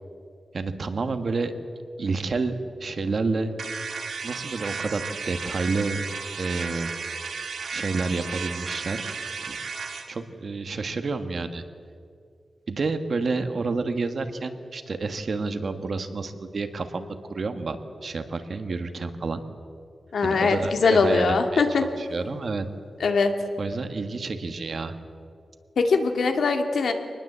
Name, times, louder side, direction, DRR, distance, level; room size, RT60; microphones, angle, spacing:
voice 1, 0.5-1.5 2.0-2.5 2.8-3.5 4.2-6.0 6.4-7.0 7.7-9.1 9.5-9.6 10.1-11.6 12.7-17.8 18.0-19.4 20.2-22.6 23.6-24.9, right 3 dB, 50° right, 8 dB, 1.5 m, -29 dB
sound 1, 3.6-10.1, right 5 dB, 80° right, 2.1 m, -34 dB
voice 2, 20.1-21.8 23.0-23.3 25.8-26.9, left 4 dB, 85° left, 5 dB, 2.2 m, -21 dB
25.0 x 20.0 x 8.1 m, 2.4 s
wide cardioid pair, 175°, 0 cm